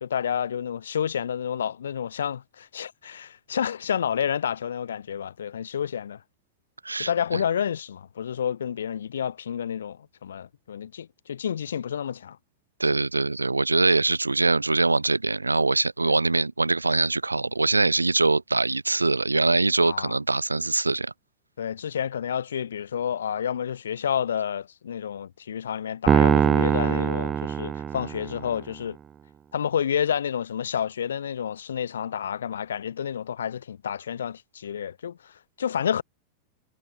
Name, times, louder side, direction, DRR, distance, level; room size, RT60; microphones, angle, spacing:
voice 1, 0.0-6.2 7.0-12.4 16.0-16.1 19.8-20.2 21.6-29.0 29.5-36.0, left 8 dB, 65° left, 2.4 m, -30 dB
voice 2, 6.8-7.4 12.8-21.1, right 3 dB, 80° right, 3.2 m, -23 dB
Piano, 26.1-28.5, right 8 dB, 25° right, 3.8 m, -22 dB
figure-of-eight pair, 90°, 0 cm